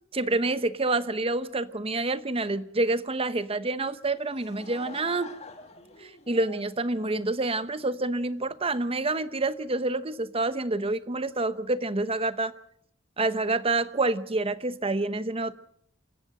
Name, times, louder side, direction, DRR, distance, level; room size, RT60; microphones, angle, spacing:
voice 1, 0.1-5.3 6.0-12.5 13.2-15.5, right 2 dB, 30° right, 1.0 m, -28 dB
Laughter / Crowd, 4.0-7.8, left 3 dB, 35° left, 2.3 m, -47 dB
27.5 x 15.5 x 6.6 m
head